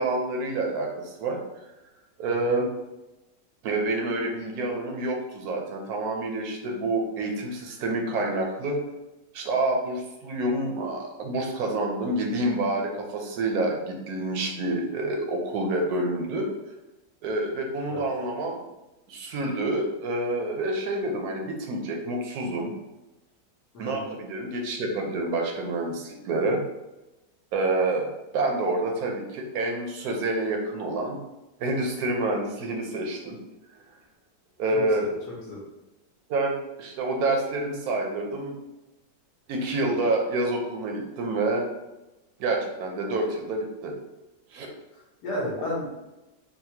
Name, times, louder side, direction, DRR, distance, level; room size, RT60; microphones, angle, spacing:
voice 1, 0.0-1.4 2.2-2.7 3.6-8.8 9.3-16.5 17.2-18.6 19.1-22.8 23.8-26.6 27.5-31.2 31.6-33.4 34.6-35.1 36.3-38.6 39.5-41.7 42.4-43.9 44.5-44.7, right 2 dB, 70° right, 1 dB, 1.0 m, -28 dB
voice 2, 34.7-35.6 45.2-45.9, left 1 dB, 65° left, -3 dB, 1.4 m, -33 dB
4.0 x 2.2 x 2.8 m, 1.0 s
omnidirectional pair, 2.0 m